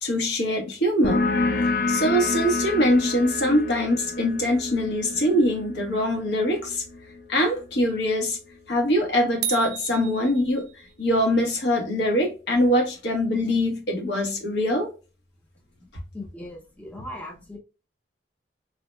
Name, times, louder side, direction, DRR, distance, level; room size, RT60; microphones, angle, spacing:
voice 1, 0.0-1.3 1.9-6.8 7.3-8.4 8.7-10.7 11.0-14.9, equal, 80° left, 1.0 m, -23 dB
sound 1, 1.0-8.3, left 3 dB, 55° left, 0.4 m, -29 dB
sound 2, 9.4-11.0, right 9 dB, 65° right, 0.3 m, -33 dB
voice 2, 16.1-17.6, left 1 dB, 10° left, 0.6 m, -38 dB
2.7 x 2.0 x 3.2 m
head